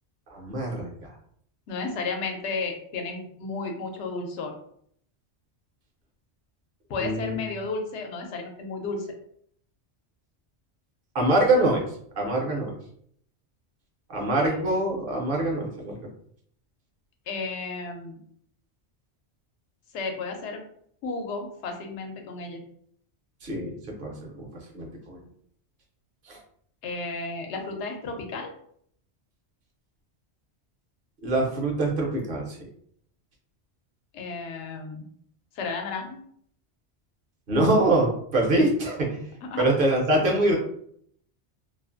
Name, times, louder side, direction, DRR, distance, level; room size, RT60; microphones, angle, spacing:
voice 1, 0.3-1.1 7.0-7.4 11.1-11.8 12.2-12.8 14.1-15.9 23.4-24.5 24.7-25.2 26.3-26.4 31.2-32.6 37.5-39.2 39.6-40.6, right 1 dB, 60° right, 0 dB, 0.7 m, -24 dB
voice 2, 1.7-4.5 6.9-9.1 14.4-14.6 17.3-18.2 19.9-20.6 21.0-22.6 26.8-28.5 34.1-35.0 35.5-36.2 39.4-39.7, left 3 dB, 85° left, 3 dB, 0.9 m, -33 dB
2.5 x 2.4 x 2.4 m, 0.65 s
omnidirectional pair, 1.1 m